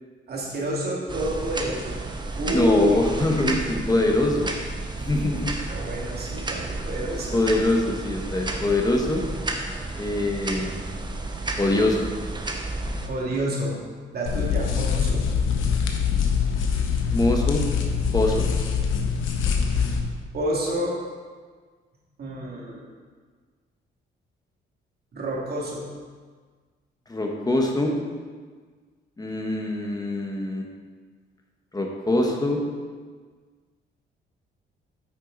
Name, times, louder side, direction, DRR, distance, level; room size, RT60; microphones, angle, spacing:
voice 1, 0.3-2.0 2.4-3.0 5.7-7.4 13.1-13.8 14.1-15.2 20.3-21.0 22.2-22.9 25.1-25.8, right 1 dB, 50° right, -4 dB, 2.5 m, -28 dB
sound 1, 1.1-13.1, right 2 dB, 20° right, 1.0 m, -32 dB
voice 2, 2.5-4.5 5.0-5.6 7.3-9.2 9.9-10.7 11.6-12.1 17.1-17.6 18.1-18.5 27.1-28.0 29.2-30.6 31.7-32.6, left 2 dB, 20° left, 1 dB, 1.3 m, -23 dB
sound 2, 14.3-20.0, left 6 dB, 85° left, 1.0 m, -24 dB
9.3 x 6.4 x 4.0 m, 1.5 s
cardioid pair, 90°, 20 cm